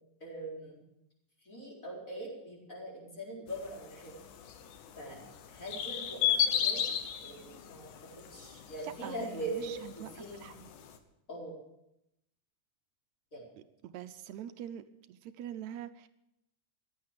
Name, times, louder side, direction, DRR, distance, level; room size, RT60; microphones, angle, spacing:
voice 1, 0.2-0.8 1.4-4.2 4.9-5.2 5.5-6.8 7.2-7.9 8.3-10.5 11.3-11.6 13.3-13.4, right 1 dB, 25° left, -4 dB, 4.9 m, -42 dB
sound 1, 3.5-11.0, left 9 dB, 80° left, 2.5 m, -36 dB
voice 2, 8.8-10.7 13.6-16.1, right 10 dB, 75° right, 10 dB, 1.9 m, -45 dB
15.0 x 11.0 x 6.5 m, 0.83 s
omnidirectional pair, 3.5 m